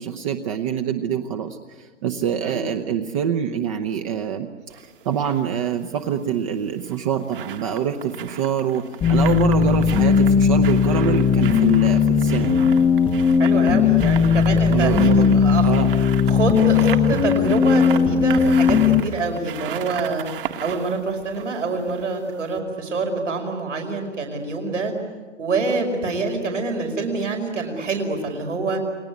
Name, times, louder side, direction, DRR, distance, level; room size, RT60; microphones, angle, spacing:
voice 1, 0.0-4.5 4.8-12.6 14.7-15.3 15.6-15.9, right 8 dB, 25° right, 7 dB, 1.0 m, -25 dB
sound 1, 4.7-5.4 6.7-22.2 22.5-22.6, right 10 dB, 45° right, 2.0 m, -36 dB
sound 2, 9.0-19.0, left 6 dB, 5° left, 0.8 m, -17 dB
voice 2, 13.4-15.7 16.3-20.3 20.6-24.9 25.4-28.8, right 3 dB, 75° right, 2 dB, 5.3 m, -26 dB
29.5 x 21.0 x 9.7 m, 1.5 s
hypercardioid pair, 145°, 37 cm